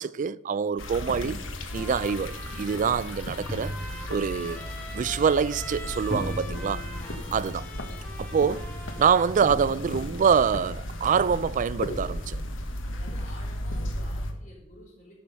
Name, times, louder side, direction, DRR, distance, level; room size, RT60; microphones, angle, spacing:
voice 1, 0.0-1.4 1.7-3.7 4.1-4.6 4.9-6.8 7.3-7.6 8.2-8.7 9.0-12.4, right 6 dB, 40° right, 0.3 m, -25 dB
sound 1, 0.8-14.3, left 1 dB, 80° left, 1.3 m, -35 dB
sound 2, 0.9-7.7, equal, 5° right, 2.1 m, -41 dB
Trumpet, 1.7-9.3, equal, 10° left, 1.6 m, -44 dB
voice 2, 6.9-7.4 12.9-15.2, equal, 45° left, 4.5 m, -50 dB
13.0 x 6.3 x 5.5 m
head